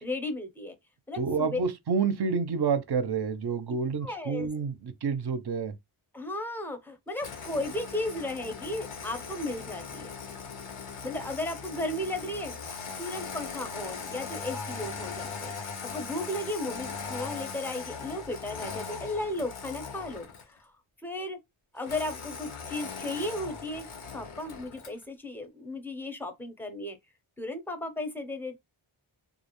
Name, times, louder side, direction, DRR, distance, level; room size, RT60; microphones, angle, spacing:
voice 1, 0.0-0.7 1.1-1.6 4.0-4.5 6.1-10.1 11.0-12.6 13.0-15.5 15.8-20.7 21.0-21.4 21.7-23.9 24.1-27.0 27.4-28.6, left 2 dB, 5° left, 0.5 m, -35 dB
voice 2, 1.1-5.7, right 5 dB, 55° right, 0.5 m, -29 dB
Engine starting, 7.2-20.6 21.8-25.0, left 5 dB, 80° left, 0.7 m, -39 dB
2.4 x 2.0 x 2.9 m
wide cardioid pair, 45°, 49 cm